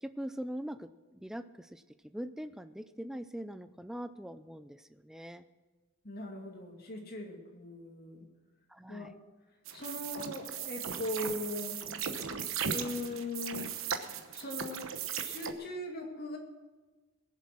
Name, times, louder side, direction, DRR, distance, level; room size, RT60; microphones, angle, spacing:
voice 1, 0.0-1.8 2.1-5.4 8.7-9.1, equal, ahead, 11 dB, 0.4 m, -42 dB
voice 2, 6.0-8.2 8.9-9.2 9.7-11.8 12.6-13.7 14.3-14.9 15.2-16.4, left 2 dB, 50° left, 1 dB, 2.3 m, -39 dB
sound 1, 9.7-15.5, right 7 dB, 75° right, 1.0 m, -37 dB
20.5 x 7.5 x 6.1 m, 1.2 s
head